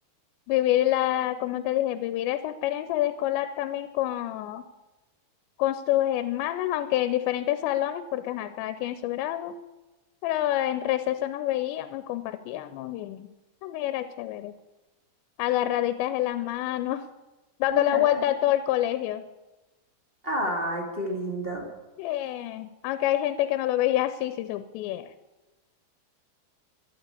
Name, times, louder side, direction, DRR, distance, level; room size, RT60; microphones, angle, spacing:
voice 1, 0.5-4.6 5.6-9.5 10.2-13.3 13.6-14.5 15.4-17.0 17.6-19.3 22.0-25.1, left 13 dB, 90° left, 12 dB, 2.9 m, -27 dB
voice 2, 17.7-18.0 20.2-21.6, right 1 dB, 20° right, 0 dB, 1.7 m, -30 dB
12.5 x 11.5 x 8.5 m, 1.1 s
omnidirectional pair, 5.0 m